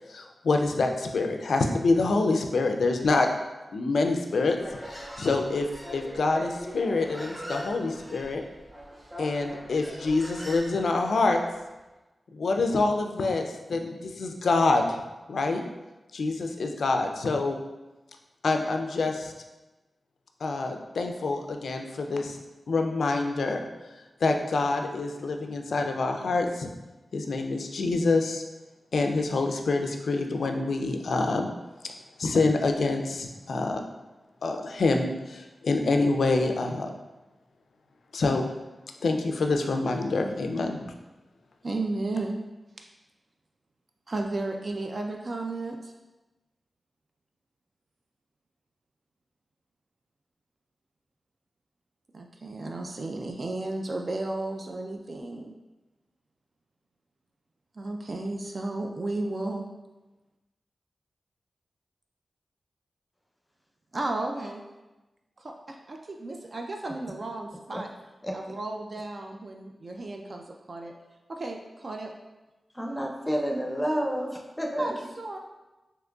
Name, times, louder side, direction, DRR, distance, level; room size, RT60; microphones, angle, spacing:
voice 1, 0.1-3.3 3.7-4.6 4.8-5.7 5.9-8.4 9.2-11.4 12.3-15.0 15.3-15.6 16.1-17.6 18.4-19.3 20.4-22.4 22.7-23.7 24.2-26.7 27.1-28.4 28.9-31.5 32.2-33.9 34.4-36.9 38.1-38.4 39.0-40.8, left 3 dB, 80° left, 4 dB, 0.3 m, -26 dB
Human voice, 4.5-11.6, equal, 30° right, 1.1 m, -41 dB
voice 2, 41.6-42.4 44.1-45.9 52.1-55.5 57.7-59.7 63.9-64.6 65.4-67.9 68.3-70.9 71.3-72.1 74.8-75.4, right 2 dB, 50° right, 2 dB, 0.3 m, -33 dB
voice 3, 72.8-74.9, equal, 10° left, 0 dB, 0.6 m, -29 dB
3.7 x 2.8 x 2.3 m, 1.1 s
cardioid pair, 60°, 0 cm